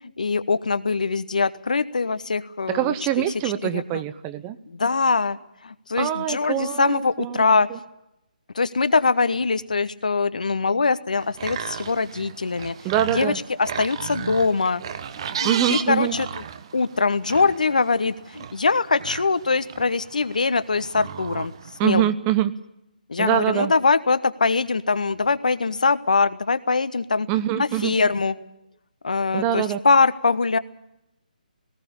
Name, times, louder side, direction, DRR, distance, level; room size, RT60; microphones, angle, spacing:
voice 1, 0.2-2.9 3.6-3.8 4.7-5.4 5.6-7.7 8.5-12.7 13.1-13.3 13.6-14.8 15.2-16.3 16.7-21.5 21.8-22.0 23.1-27.3 27.6-28.3 29.0-30.6, left 4 dB, 60° left, 14 dB, 1.1 m, -22 dB
voice 2, 2.7-4.6 6.0-7.4 7.7-7.8 12.8-13.4 15.4-16.2 21.8-22.5 23.2-23.7 27.3-27.9 29.3-29.8, right 11 dB, 15° right, 12 dB, 0.7 m, -24 dB
sound 1, 11.1-21.9, right 8 dB, 35° right, 1.1 m, -35 dB
19.0 x 18.0 x 8.5 m, 0.84 s
figure-of-eight pair, 145°, 5 cm